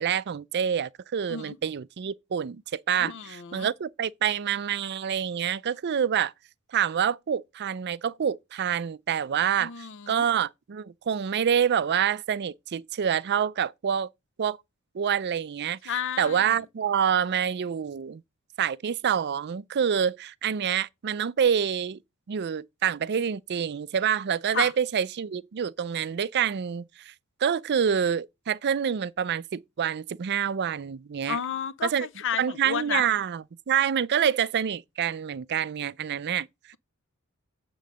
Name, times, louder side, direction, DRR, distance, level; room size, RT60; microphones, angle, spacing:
voice 1, 0.0-6.3 6.7-9.7 10.1-14.1 14.4-14.6 14.9-15.9 16.2-18.2 18.6-22.0 22.3-27.1 27.4-31.4 31.8-32.1 32.4-36.5, right 8 dB, 50° right, 0.4 m, -27 dB
voice 2, 3.0-3.7 9.6-10.2 15.9-16.5 24.5-24.7 31.3-33.0, left 7 dB, 60° left, 0.6 m, -32 dB
8.5 x 3.9 x 6.1 m
head